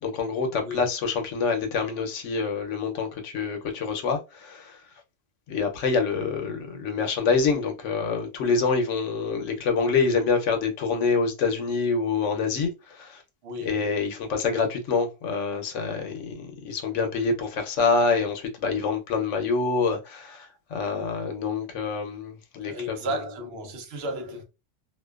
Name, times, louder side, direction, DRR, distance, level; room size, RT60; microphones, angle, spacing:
voice 1, 0.0-4.8 5.5-13.2 13.6-23.2, left 4 dB, 75° left, 1.0 m, -26 dB
voice 2, 13.4-13.8 22.6-24.4, equal, 60° right, 0.8 m, -33 dB
2.5 x 2.2 x 2.3 m
omnidirectional pair, 1.3 m